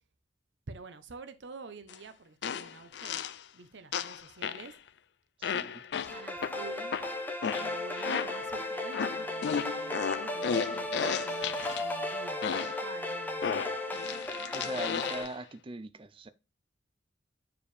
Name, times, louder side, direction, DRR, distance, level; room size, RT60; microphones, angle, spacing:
voice 1, 0.7-3.2 3.5-4.8 6.0-6.9 7.5-13.5, right 4 dB, 80° right, 0.8 m, -48 dB
sound 1, 1.9-2.0 2.4-3.4 3.9-4.7 5.4-8.5 8.9-11.9 12.4-12.9 13.4-15.3, left 7 dB, 65° left, 0.4 m, -34 dB
voice 2, 5.4-5.8 14.5-16.3, right 2 dB, 30° right, 0.5 m, -41 dB
sound 2, 6.0-15.2, left 1 dB, 10° left, 1.0 m, -35 dB
7.0 x 4.9 x 3.2 m
head